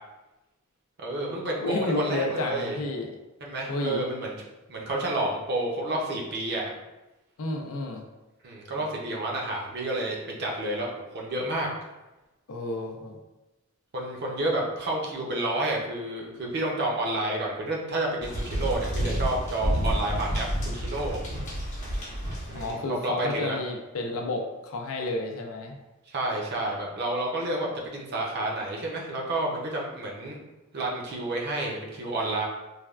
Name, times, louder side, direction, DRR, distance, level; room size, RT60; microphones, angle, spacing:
voice 1, 1.0-2.8 3.4-4.3 4.7-6.7 8.4-11.7 13.9-21.2 22.5-23.6 26.1-30.4 30.7-32.5, right 1 dB, 50° right, -2 dB, 0.6 m, -30 dB
voice 2, 1.6-3.1 3.7-4.0 7.4-8.1 12.5-13.2 22.5-25.8, left 2 dB, 80° left, 2 dB, 0.4 m, -31 dB
sound 1, 18.2-22.7, equal, 35° left, 0.9 m, -30 dB
3.3 x 2.2 x 2.3 m, 1.0 s
head